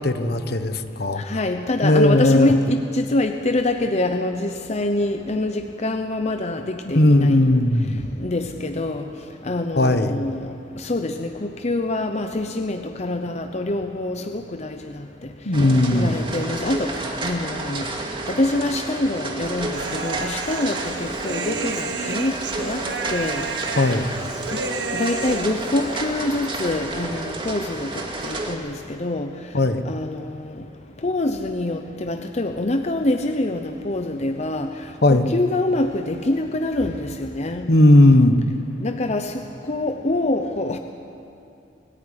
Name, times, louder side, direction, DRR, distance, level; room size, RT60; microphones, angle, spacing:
voice 1, 0.0-1.2 1.8-2.5 6.8-8.0 9.7-10.2 15.4-16.1 23.8-24.1 29.5-29.9 35.0-35.3 37.7-38.4, left 1 dB, 60° left, 9 dB, 1.2 m, -17 dB
voice 2, 1.3-7.5 8.2-9.0 9.5-10.5 10.8-14.7 15.9-16.9 17.2-17.8 18.4-22.3 22.6-22.8 23.1-23.4 24.5-24.6 24.9-27.9 28.2-28.7 29.0-29.3 29.9-30.2 31.0-34.7 35.1-37.7 38.8-39.3 39.7-40.8, left 2 dB, 40° left, 6 dB, 0.8 m, -25 dB
sound 1, 15.5-28.6, right 2 dB, 30° right, 2.3 m, -31 dB
Human voice, 19.7-26.1, right 4 dB, 70° right, 1.4 m, -31 dB
22.5 x 14.0 x 9.8 m, 2.6 s
head